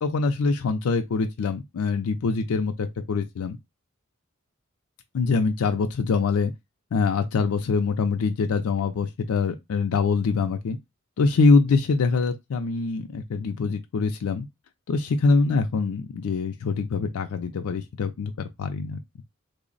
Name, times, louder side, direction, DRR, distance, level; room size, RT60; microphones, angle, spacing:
voice 1, 0.0-3.6 5.1-6.5 6.9-10.8 11.2-14.5 14.9-19.0, left 4 dB, 85° left, 0.4 m, -24 dB
3.3 x 2.0 x 3.8 m
head